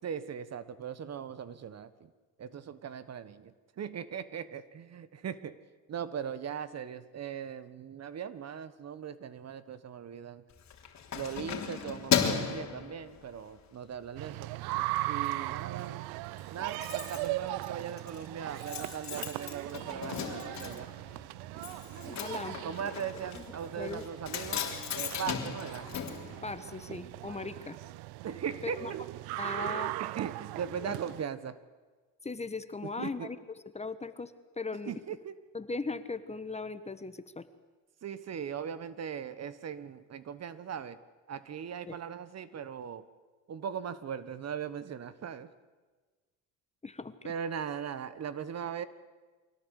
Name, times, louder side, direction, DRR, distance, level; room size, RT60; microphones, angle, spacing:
voice 1, 0.0-2.1 2.4-5.6 5.9-10.4 11.1-14.5 15.0-16.0 16.5-20.9 22.6-24.7 24.9-25.9 28.2-29.0 30.0-31.6 32.8-33.3 34.9-35.4 38.0-41.0 41.3-43.1 43.5-45.5 47.2-48.9, right 8 dB, 45° right, 15 dB, 1.4 m, -39 dB
Keys jangling, 10.5-13.6 14.0-14.3 14.6-15.3 15.6-15.7 15.9-16.0 16.2-27.0 27.3-27.4, left 8 dB, 45° left, 3.6 m, -36 dB
sound 1, 14.2-31.2, right 19 dB, 75° right, 0.6 m, -39 dB
voice 2, 22.0-22.6 23.3-23.4 23.8-24.0 26.4-27.8 28.6-28.9 29.4-29.9 30.8-30.9 32.2-33.4 33.7-34.9 35.5-37.5 41.9-42.0 46.8-47.2, left 3 dB, 15° left, 12 dB, 1.4 m, -38 dB
24.5 x 17.5 x 8.4 m, 1.3 s
supercardioid pair, 85°, 37 cm